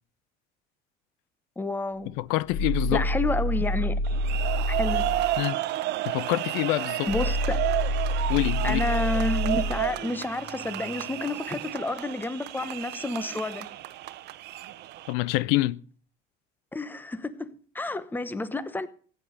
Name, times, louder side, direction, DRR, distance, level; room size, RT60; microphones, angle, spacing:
voice 1, 1.6-2.1 2.9-4.0 4.7-5.0 7.1-7.6 8.6-13.7 16.7-18.9, left 2 dB, 10° left, 1.0 m, -30 dB
sound 1, 1.9-5.4 7.1-11.2, equal, 70° left, 6.6 m, -28 dB
voice 2, 2.2-3.1 5.4-5.6 6.1-7.1 8.3-8.8 15.1-15.8, left 19 dB, 85° left, 0.6 m, -26 dB
sound 2, 4.0-15.1, right 15 dB, 55° right, 1.0 m, -32 dB
16.0 x 9.0 x 6.5 m
cardioid pair, 130°, 20 cm